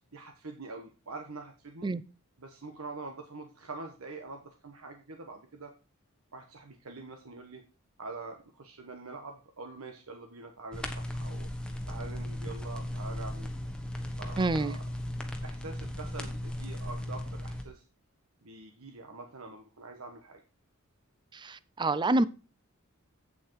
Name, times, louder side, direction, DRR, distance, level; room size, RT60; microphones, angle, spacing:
voice 1, 0.1-1.9 2.4-5.7 6.3-7.6 8.0-11.5 11.9-13.5 14.2-14.8 15.4-17.8 18.4-20.4, right 3 dB, 90° right, 1.2 m, -45 dB
sound 1, 10.7-17.6, left 1 dB, 5° left, 1.3 m, -37 dB
voice 2, 14.4-14.8 21.3-22.3, right 2 dB, 20° right, 0.5 m, -27 dB
8.5 x 7.7 x 4.7 m
head